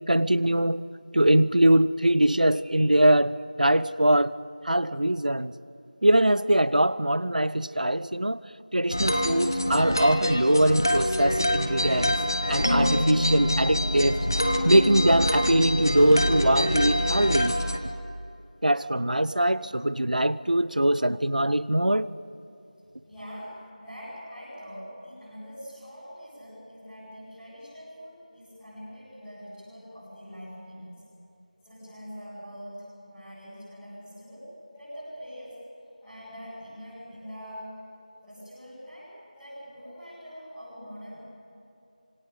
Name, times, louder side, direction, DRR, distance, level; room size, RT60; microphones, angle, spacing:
voice 1, 0.1-0.8 1.1-4.3 4.6-5.6 6.0-8.4 8.7-12.2 12.5-14.3 14.6-17.6 18.6-22.1, right 1 dB, 70° right, 17 dB, 0.9 m, -22 dB
sound 1, 8.9-17.8, equal, 25° left, 1.0 m, -25 dB
voice 2, 23.0-30.9 31.6-34.5 34.7-35.6 36.0-37.7 38.2-41.2, equal, ahead, -20 dB, 2.7 m, -43 dB
26.5 x 22.5 x 8.3 m, 2.7 s
figure-of-eight pair, 180°, 5 cm